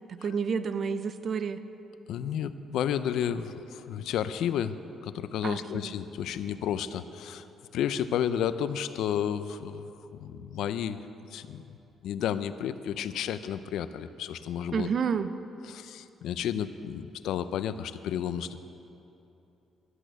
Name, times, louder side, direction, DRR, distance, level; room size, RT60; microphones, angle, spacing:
voice 1, 0.1-1.6 5.4-5.9 14.7-15.3, right 6 dB, 50° right, 12 dB, 0.7 m, -30 dB
voice 2, 2.1-7.5 7.7-9.9 10.2-11.0 11.3-11.8 12.0-14.9 15.6-18.6, left 9 dB, 80° left, 12 dB, 0.5 m, -32 dB
13.0 x 8.4 x 9.1 m, 2.9 s
cardioid pair, 90°, 0 cm